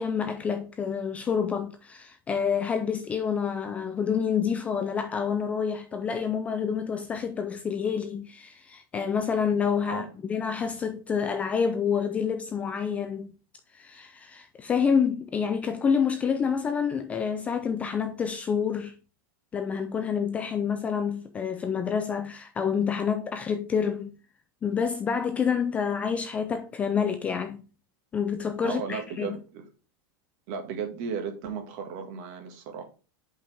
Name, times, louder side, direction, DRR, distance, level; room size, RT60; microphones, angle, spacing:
voice 1, 0.0-13.3 13.7-18.9 19.5-24.2 24.6-27.6 28.1-29.4, left 6 dB, 10° left, 0.3 m, -28 dB
voice 2, 28.6-29.7 30.5-32.8, right 6 dB, 40° right, 1.7 m, -35 dB
7.8 x 5.4 x 3.4 m
supercardioid pair, 175°, 11 cm